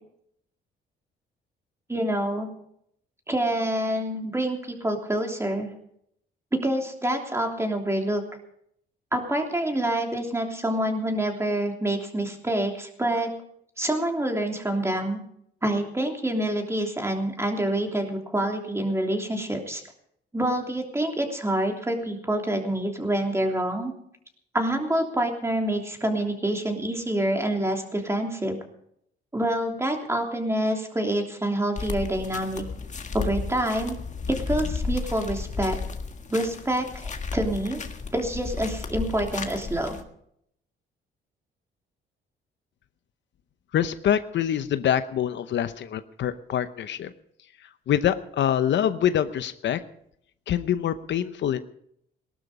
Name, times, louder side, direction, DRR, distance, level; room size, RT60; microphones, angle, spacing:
voice 1, 1.9-2.5 3.3-5.7 6.5-8.2 9.1-13.3 13.8-15.2 15.6-19.8 20.3-23.9 24.5-28.6 29.3-32.6 33.1-34.0 34.3-35.8 36.3-37.8 38.1-40.0, right 1 dB, 15° right, 2 dB, 3.2 m, -27 dB
sound 1, 31.8-40.0, left 4 dB, 35° left, 1.8 m, -33 dB
voice 2, 43.7-47.1 47.9-49.8 50.5-51.6, left 10 dB, 65° left, 11 dB, 0.9 m, -25 dB
18.0 x 12.5 x 5.0 m, 0.71 s
cardioid pair, 90°, 20 cm